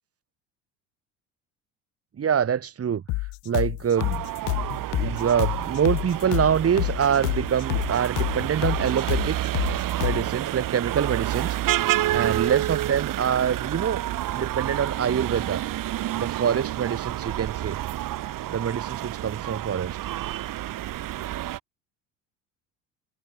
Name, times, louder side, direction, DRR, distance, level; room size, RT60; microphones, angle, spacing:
voice 1, 2.2-3.0 3.5-4.3 4.9-9.4 10.0-11.6 11.9-14.0 14.3-15.6 16.1-17.8 18.5-20.0, right 8 dB, 40° right, 3.9 m, -25 dB
sound 1, 3.1-10.3, left 22 dB, 65° left, 2.6 m, -28 dB
sound 2, 4.0-21.6, right 14 dB, 60° right, 6.7 m, -29 dB
hypercardioid pair, 75°, 38 cm